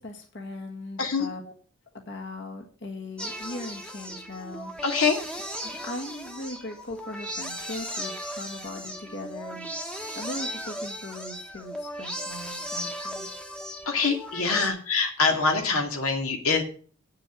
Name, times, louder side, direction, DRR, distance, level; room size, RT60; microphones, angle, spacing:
voice 1, 0.0-1.4 2.1-4.7 5.0-5.1 5.8-13.3, left 2 dB, 55° left, 1 dB, 1.7 m, -39 dB
sound 1, 3.2-14.7, equal, 5° left, 1.2 m, -36 dB
voice 2, 4.8-5.2 13.9-16.6, left 4 dB, 85° left, 3 dB, 2.1 m, -24 dB
9.2 x 6.7 x 6.2 m, 0.42 s
head